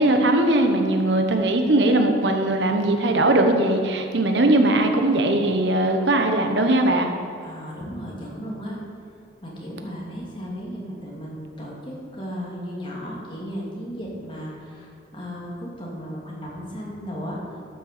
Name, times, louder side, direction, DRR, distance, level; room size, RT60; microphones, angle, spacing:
voice 1, 0.0-7.1, right 1 dB, 70° right, 4 dB, 1.1 m, -20 dB
voice 2, 7.4-8.8 9.4-17.6, equal, 25° left, -4 dB, 2.4 m, -35 dB
12.5 x 6.7 x 6.7 m, 2.5 s
head